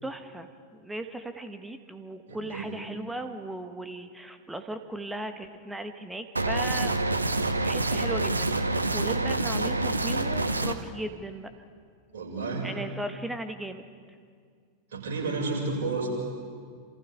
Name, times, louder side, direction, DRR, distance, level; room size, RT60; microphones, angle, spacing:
voice 1, 0.0-6.9 7.5-11.5 12.6-13.9, right 1 dB, 5° right, 8 dB, 1.4 m, -37 dB
voice 2, 2.3-2.6 12.1-12.7 14.9-16.1, right 3 dB, 60° right, -2 dB, 6.4 m, -31 dB
sound 1, 6.4-10.7, right 2 dB, 80° right, 0.9 m, -27 dB
29.5 x 27.5 x 3.7 m, 2.1 s
figure-of-eight pair, 90°, 0 cm